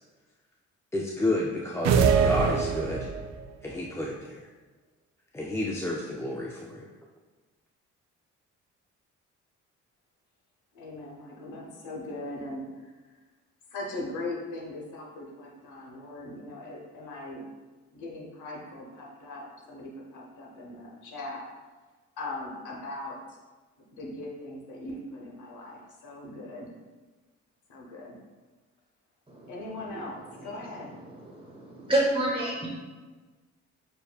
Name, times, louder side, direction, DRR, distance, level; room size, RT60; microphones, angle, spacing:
voice 1, 0.9-3.1 3.6-4.4 5.3-6.9, left 1 dB, 10° left, -2 dB, 0.4 m, -31 dB
sound 1, 1.8-3.4, right 6 dB, 60° right, 0.4 m, -23 dB
voice 2, 10.7-12.9 13.7-17.4 17.9-21.5 22.2-23.4 23.8-26.7 27.7-28.2 29.5-30.9, left 2 dB, 80° left, -1 dB, 1.0 m, -40 dB
voice 3, 31.2-32.7, right 1 dB, 20° right, -3 dB, 1.4 m, -28 dB
6.6 x 2.6 x 2.3 m, 1.3 s
cardioid pair, 90°, 30 cm